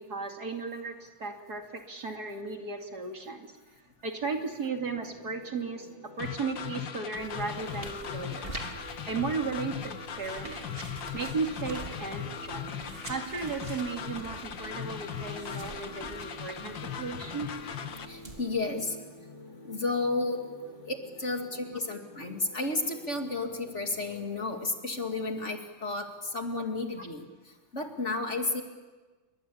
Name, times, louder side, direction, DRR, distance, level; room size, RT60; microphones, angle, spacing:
voice 1, 0.0-3.5 4.0-8.6 9.1-10.7 11.1-12.7 13.1-17.5 27.0-27.1, right 4 dB, 60° right, 3 dB, 3.1 m, -35 dB
sound 1, 4.7-24.3, equal, 65° left, 8.0 m, -49 dB
sound 2, 6.2-18.1, left 8 dB, 90° left, 2.2 m, -39 dB
sound 3, 7.1-18.4, right 1 dB, 30° right, 3.6 m, -46 dB
voice 2, 18.1-19.0 19.7-20.4 20.9-27.3 27.7-28.6, left 3 dB, 40° left, 4 dB, 2.6 m, -32 dB
28.5 x 24.0 x 8.6 m, 1.3 s
omnidirectional pair, 1.9 m